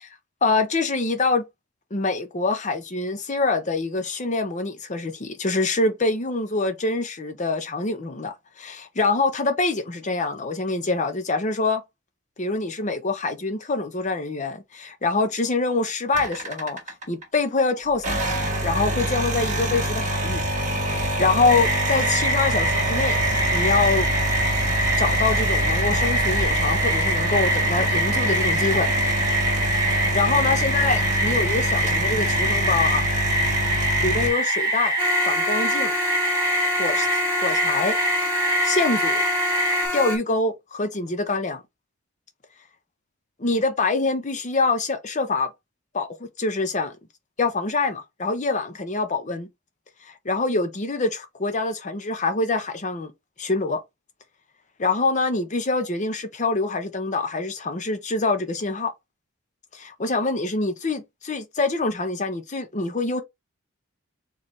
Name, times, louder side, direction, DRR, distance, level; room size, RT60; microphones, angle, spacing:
voice 1, 0.4-1.4 1.9-11.8 12.4-16.8 17.1-18.2 18.6-20.4 20.8-23.2 23.5-24.1 25.0-28.9 30.1-33.1 34.0-34.9 35.3-35.9 36.8-37.1 37.4-38.0 38.6-39.2 39.9-41.6 43.4-45.5 45.9-47.0 47.4-49.5 50.1-53.1 53.4-53.8 54.8-58.9 59.7-63.2, left 3 dB, 35° left, 0.7 m, -25 dB
sound 1, 16.1-17.2 17.9-34.3, right 1 dB, 35° right, 1.4 m, -26 dB
sound 2, 21.5-39.9, right 1 dB, 15° right, 1.4 m, -24 dB
sound 3, 35.0-40.2, left 2 dB, 10° left, 1.3 m, -27 dB
4.2 x 3.2 x 3.1 m
head